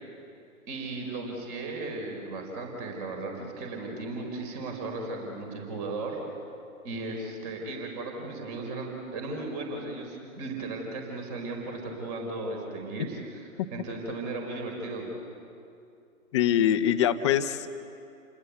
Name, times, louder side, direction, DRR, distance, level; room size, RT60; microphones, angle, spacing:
voice 1, 0.7-6.2 6.8-15.0, right 2 dB, 30° right, 2 dB, 4.8 m, -36 dB
voice 2, 16.3-17.7, left 10 dB, 20° left, 9 dB, 0.8 m, -23 dB
29.0 x 20.5 x 8.2 m, 2.5 s
figure-of-eight pair, 135°, 42 cm